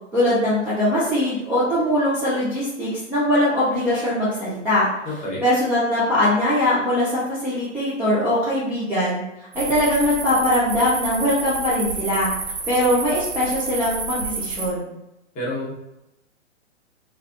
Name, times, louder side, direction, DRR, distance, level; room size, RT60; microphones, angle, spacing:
voice 1, 0.1-4.9 5.4-9.2 9.5-12.3 12.7-14.9, left 1 dB, 5° right, -12 dB, 0.5 m, -21 dB
voice 2, 5.0-5.4 15.3-15.7, left 1 dB, 20° left, -5 dB, 0.9 m, -28 dB
sound 1, 9.5-14.7, right 4 dB, 90° right, 0.7 m, -29 dB
2.9 x 2.5 x 2.4 m, 0.88 s
hypercardioid pair, 130°, 37 cm